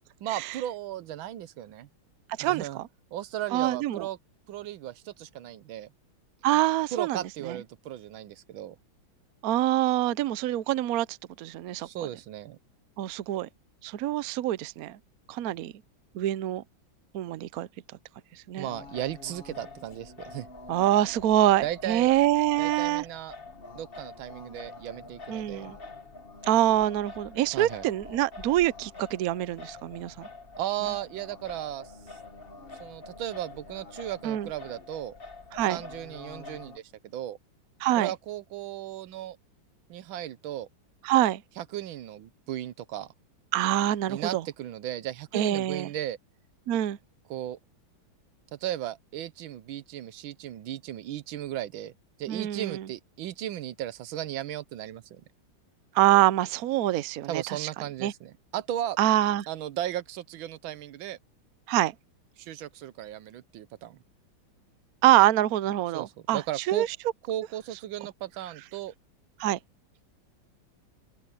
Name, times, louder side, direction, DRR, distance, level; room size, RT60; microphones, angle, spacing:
voice 1, 0.2-1.9 2.4-2.8 3.1-4.2 4.5-5.9 6.9-8.7 11.8-12.6 18.6-20.5 21.6-22.1 22.6-23.3 23.7-25.7 27.5-27.9 30.6-31.9 32.8-35.1 35.7-36.8 37.1-37.4 38.0-39.4 39.9-40.7 41.6-43.1 44.1-46.2 47.3-47.6 48.5-51.9 52.2-55.2 57.3-59.0 59.5-61.2 62.4-64.0 65.9-66.9 67.3-68.9, right 12 dB, 85° right, 1.6 m, -35 dB
voice 2, 2.4-2.9 3.5-4.1 6.4-7.6 9.4-11.9 13.0-13.5 13.8-15.0 15.3-15.7 16.1-16.6 17.1-17.7 18.3-18.7 20.7-23.0 25.3-25.8 26.4-30.3 34.2-34.5 35.5-35.8 37.8-38.1 41.0-41.4 43.5-44.4 45.3-45.9 46.7-47.0 52.3-52.9 55.9-57.7 58.0-58.1 59.0-59.5 61.7-61.9 65.0-66.9 69.4-69.6, right 13 dB, 65° right, 0.9 m, -25 dB
Singing, 18.6-36.8, left 3 dB, 30° left, 1.7 m, -46 dB
open air
omnidirectional pair, 2.1 m